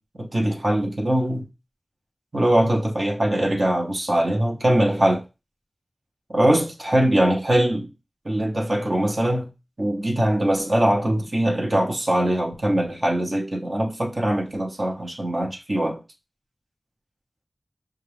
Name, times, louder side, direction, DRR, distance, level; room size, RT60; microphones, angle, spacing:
voice 1, 0.2-1.4 2.3-5.2 6.3-7.9 8.2-9.5 9.8-16.0, right 1 dB, 50° right, 0.9 m, -22 dB
5.7 x 2.4 x 3.3 m
wide cardioid pair, 60°, 0 cm